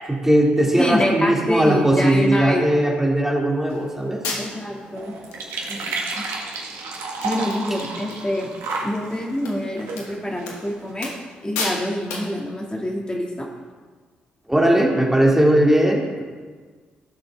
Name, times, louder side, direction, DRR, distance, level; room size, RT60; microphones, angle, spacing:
voice 1, 0.1-4.2 14.5-16.2, right 1 dB, 10° right, -1 dB, 2.3 m, -18 dB
voice 2, 0.8-2.7 4.4-5.1 5.7-6.2 7.2-8.5 8.8-11.1 11.4-13.5, left 1 dB, 20° left, -1 dB, 2.2 m, -26 dB
sound 1, 3.7-3.8 4.2-4.8 5.3-5.4 5.7-6.2 6.5-6.6 6.9-7.0 7.2-8.2 8.5-8.8 9.4-9.6 9.9-10.1 10.5-10.6 11.0-11.3 11.5-11.8 12.1-12.3, left 3 dB, 80° left, 1.7 m, -31 dB
sound 2, 3.7-10.9, right 3 dB, 70° right, 1.6 m, -32 dB
15.5 x 6.6 x 3.6 m, 1.5 s
hypercardioid pair, 40°, 5 cm